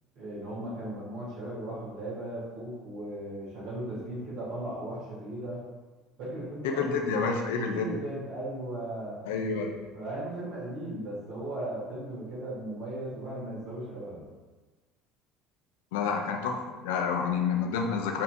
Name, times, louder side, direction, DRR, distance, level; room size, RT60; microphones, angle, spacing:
voice 1, 0.1-5.6 6.2-6.8 7.7-9.2 9.9-14.3, right 1 dB, 55° right, -7 dB, 1.5 m, -37 dB
voice 2, 6.6-7.9 9.3-9.8 15.9-18.2, left 5 dB, 65° left, 3 dB, 0.4 m, -29 dB
4.2 x 2.8 x 2.2 m, 1.3 s
figure-of-eight pair, 60°, 0 cm